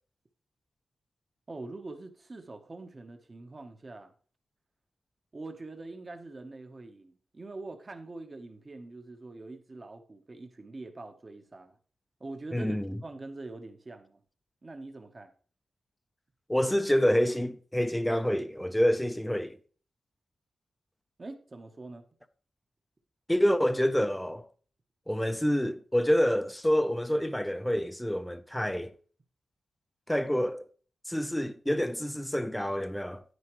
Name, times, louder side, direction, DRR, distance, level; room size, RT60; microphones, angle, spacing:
voice 1, 1.5-4.1 5.3-11.8 12.2-14.2 14.6-15.3 21.2-22.0, right 2 dB, 35° right, 1.1 m, -44 dB
voice 2, 12.5-13.0 16.5-19.5 23.3-24.4 25.1-28.9 30.1-30.6 31.1-33.2, equal, 5° left, 0.7 m, -27 dB
9.7 x 9.4 x 3.1 m
wide cardioid pair, 105°, 0 cm